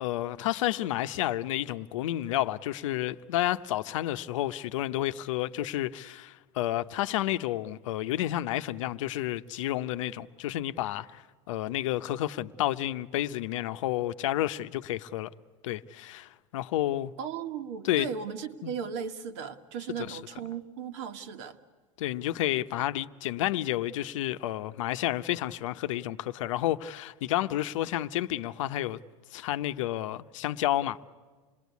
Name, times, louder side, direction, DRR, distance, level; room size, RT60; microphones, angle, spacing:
voice 1, 0.0-15.3 15.6-17.1 17.8-18.1 18.6-18.7 20.0-20.2 22.0-29.0 29.3-31.0, left 14 dB, 75° left, 0.8 m, -30 dB
voice 2, 17.2-21.6, right 7 dB, 65° right, 1.7 m, -37 dB
27.5 x 20.0 x 8.3 m
supercardioid pair, 150°, 17 cm